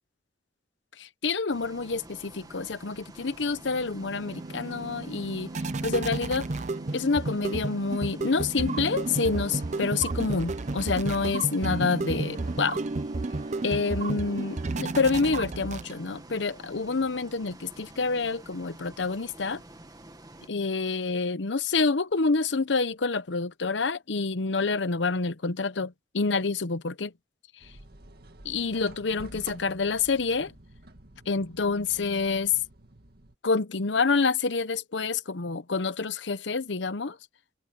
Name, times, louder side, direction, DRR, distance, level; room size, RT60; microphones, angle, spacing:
voice 1, 1.0-5.5 5.8-6.5 6.9-12.8 13.6-19.6 20.5-27.1 28.4-30.5 31.3-32.5 33.4-37.2, left 4 dB, 75° left, 0.9 m, -27 dB
Bus, 1.5-20.5, right 1 dB, 20° right, 1.8 m, -49 dB
sound 1, 3.5-16.3, right 3 dB, 40° right, 0.6 m, -32 dB
sound 2, 27.6-33.4, right 1 dB, 60° right, 2.2 m, -50 dB
head